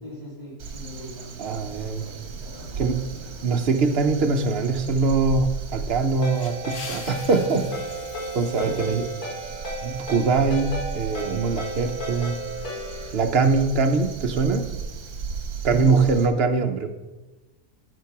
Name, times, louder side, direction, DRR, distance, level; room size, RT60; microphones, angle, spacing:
voice 1, 0.0-3.6 8.6-9.0 11.2-11.3 15.7-16.1, right 1 dB, 20° left, -10 dB, 2.7 m, -39 dB
Crow, 0.6-16.3, right 5 dB, 75° right, 1.6 m, -36 dB
voice 2, 1.4-2.0 2.8-3.1 3.4-7.7 8.3-9.0 9.8-12.4 13.1-14.7 15.6-16.9, right 4 dB, 50° right, 6 dB, 0.9 m, -22 dB
Ringtone, 6.2-13.1, right 1 dB, 80° left, 4.1 m, -34 dB
sound 1, 6.2-10.6, left 4 dB, 60° left, 1.5 m, -44 dB
12.5 x 4.3 x 5.9 m, 1.1 s
omnidirectional pair, 1.6 m